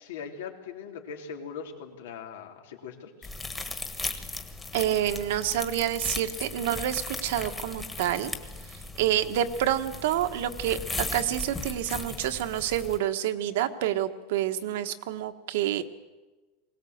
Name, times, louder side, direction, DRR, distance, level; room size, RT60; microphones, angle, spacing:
voice 1, 0.0-3.3, left 6 dB, 90° left, 3 dB, 3.3 m, -40 dB
sound 1, 3.2-13.0, left 3 dB, 10° left, 1.5 m, -37 dB
voice 2, 4.7-8.3 8.7-15.8, right 11 dB, 70° right, 8 dB, 1.4 m, -28 dB
21.5 x 18.5 x 8.0 m, 1.2 s
supercardioid pair, 160°, 0 cm